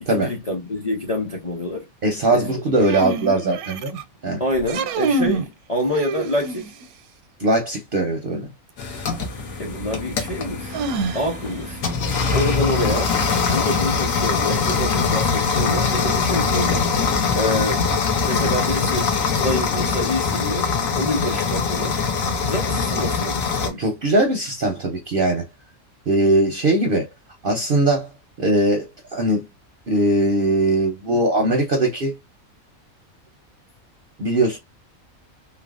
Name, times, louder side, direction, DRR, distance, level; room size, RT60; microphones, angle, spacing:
voice 1, 0.0-1.9 2.3-2.5 4.4-6.7 9.6-10.8 11.1-11.8 12.3-13.1 13.5-16.8 17.3-17.9 18.2-19.1 19.4-22.0 22.4-23.8, left 1 dB, 35° left, 0.6 m, -26 dB
voice 2, 2.0-4.4 7.4-8.5 23.8-25.5 26.1-27.1 27.4-28.1 28.4-29.4 29.9-32.1 34.2-34.6, right 2 dB, 55° right, 0.6 m, -20 dB
sound 1, 2.8-4.0 4.6-5.5 5.9-6.8 8.8-8.9 10.7-11.6, right 3 dB, 85° right, 1.1 m, -26 dB
sound 2, 8.8-23.7, left 5 dB, 70° left, 1.2 m, -22 dB
3.2 x 2.1 x 2.3 m
omnidirectional pair, 1.5 m